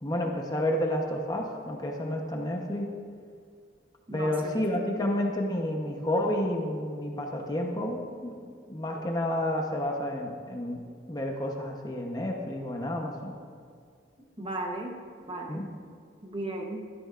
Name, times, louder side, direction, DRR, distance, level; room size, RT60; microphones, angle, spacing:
voice 1, 0.0-2.9 4.1-10.8 11.1-13.4 15.5-15.7, left 1 dB, 20° left, 1 dB, 0.9 m, -30 dB
voice 2, 4.1-4.6 14.4-15.0 15.3-15.7 16.2-16.9, right 2 dB, 30° right, 2 dB, 1.0 m, -35 dB
16.0 x 12.5 x 2.5 m, 2.2 s
head